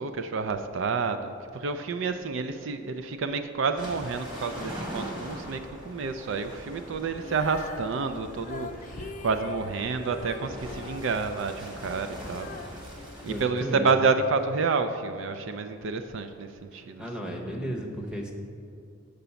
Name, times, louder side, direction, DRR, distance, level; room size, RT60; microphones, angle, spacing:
voice 1, 0.0-12.8 13.2-17.0, right 4 dB, 65° right, 8 dB, 0.4 m, -29 dB
sound 1, 3.8-13.4, equal, 25° right, 1.5 m, -42 dB
Female singing, 7.1-14.2 14.8-14.9, left 3 dB, 40° left, 0.5 m, -44 dB
voice 2, 13.3-13.9 16.7-18.3, equal, 5° right, 1 dB, 0.8 m, -34 dB
6.8 x 5.0 x 6.9 m, 2.5 s
head